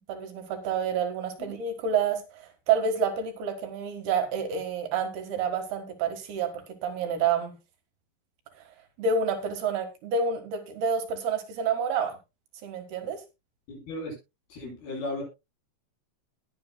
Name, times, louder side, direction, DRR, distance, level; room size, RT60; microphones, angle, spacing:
voice 1, 0.1-6.5 6.8-7.5 9.0-12.2 12.6-13.2, right 6 dB, 70° right, 6 dB, 3.5 m, -28 dB
voice 2, 13.7-14.1 14.5-15.2, left 1 dB, 65° left, -2 dB, 10.0 m, -35 dB
20.0 x 8.7 x 2.2 m, 0.25 s
omnidirectional pair, 4.7 m